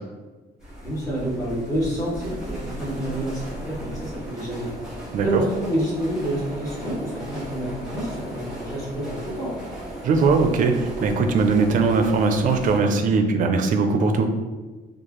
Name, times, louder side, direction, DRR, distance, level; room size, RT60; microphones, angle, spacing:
Steam train passing by, 0.6-12.8, equal, 5° right, 1.2 m, -36 dB
voice 1, 0.7-4.7 5.2-9.6, right 1 dB, 20° left, -7 dB, 1.3 m, -28 dB
voice 2, 10.0-14.3, right 4 dB, 50° right, 6 dB, 0.4 m, -20 dB
4.6 x 2.4 x 2.9 m, 1.3 s
cardioid pair, 175°, 18 cm